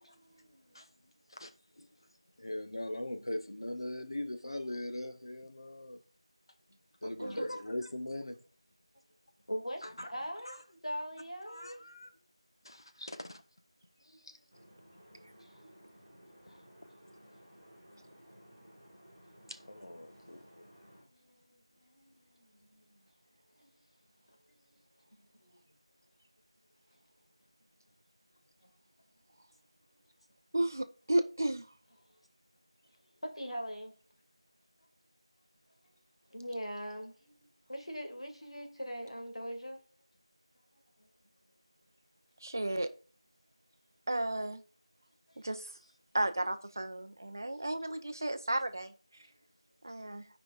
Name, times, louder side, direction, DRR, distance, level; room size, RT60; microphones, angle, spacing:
voice 1, 0.0-1.1 6.7-6.8 7.2-7.6 9.5-11.9 14.0-18.8 20.1-23.1 23.6-23.7 24.5-24.8 25.2-25.6 28.6-28.7 29.9-30.0 32.1-32.2 33.2-33.9 36.3-39.8 41.0-41.1 45.3-45.4 49.2-49.4 49.9-50.0, equal, 75° left, 2.2 m, -44 dB
voice 2, 2.4-6.0 7.0-8.4 9.8-10.1 11.5-12.1 12.6-13.4 19.5-20.4, left 1 dB, 50° left, 1.0 m, -40 dB
sound 1, 14.5-21.0, equal, 10° right, 3.0 m, -58 dB
voice 3, 30.5-31.7 42.4-42.9 44.1-44.6 45.4-45.7 46.1-48.9 49.8-50.3, right 1 dB, 35° right, 0.6 m, -33 dB
13.5 x 5.1 x 2.4 m
figure-of-eight pair, 175°, 3 cm